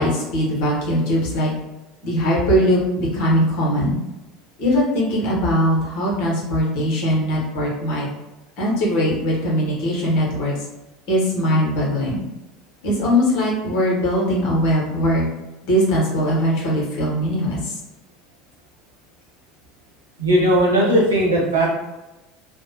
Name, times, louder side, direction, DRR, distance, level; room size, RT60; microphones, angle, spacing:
voice 1, 0.0-1.5 2.0-4.0 4.6-8.1 8.6-10.5 11.1-12.2 12.8-15.3 15.6-17.6, equal, 55° left, -4 dB, 0.8 m, -20 dB
voice 2, 20.2-21.7, right 1 dB, 80° right, -5 dB, 0.7 m, -17 dB
2.5 x 2.0 x 2.7 m, 1.0 s
figure-of-eight pair, 70°, 0 cm